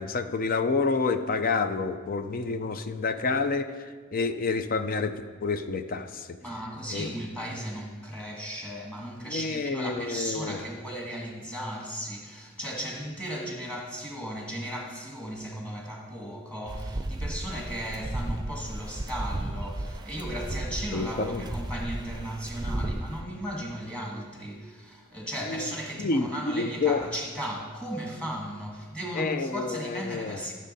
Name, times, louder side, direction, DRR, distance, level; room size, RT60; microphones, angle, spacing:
voice 1, 0.0-5.1 5.4-6.4 6.9-7.1 9.3-10.6 20.9-21.4 25.4-25.6 26.0-27.1 29.2-30.4, left 4 dB, 45° left, 0.5 m, -29 dB
voice 2, 6.4-30.5, equal, 5° left, 1.5 m, -36 dB
sound 1, 16.7-23.2, right 1 dB, 20° right, 0.6 m, -34 dB
13.5 x 6.5 x 4.1 m
head